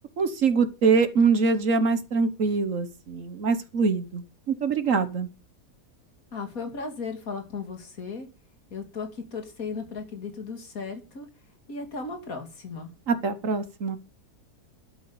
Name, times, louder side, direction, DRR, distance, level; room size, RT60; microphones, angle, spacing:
voice 1, 0.2-4.2 4.5-5.3 13.1-14.0, right 4 dB, 55° right, 11 dB, 1.4 m, -24 dB
voice 2, 6.3-8.3 8.7-11.3 11.7-12.9, left 4 dB, 60° left, 6 dB, 2.9 m, -36 dB
12.0 x 8.1 x 7.0 m, 0.33 s
omnidirectional pair, 1.7 m